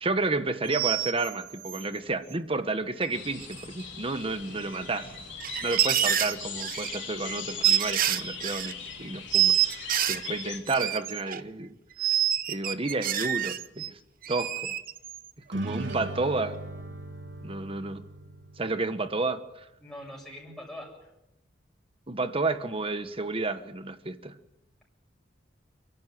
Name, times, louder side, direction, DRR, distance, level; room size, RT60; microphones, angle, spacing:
voice 1, 0.0-5.1 5.6-14.0 14.3-14.7 15.5-16.6 17.4-18.0 18.6-19.7 22.1-24.3, right 3 dB, 30° right, 10 dB, 1.3 m, -31 dB
sound 1, 0.6-1.8 3.1-3.2 3.4-3.8 4.1-4.2 5.2-8.7 9.3-11.4 12.0-13.9 14.2-15.3 15.6-15.9, right 11 dB, 50° right, 0.9 m, -27 dB
sound 2, 3.1-10.6, left 7 dB, 75° left, 3.8 m, -40 dB
sound 3, 15.5-19.1, right 1 dB, 70° right, 1.4 m, -38 dB
voice 2, 19.8-20.9, left 1 dB, ahead, -4 dB, 6.8 m, -42 dB
29.5 x 11.0 x 9.2 m, 0.91 s
head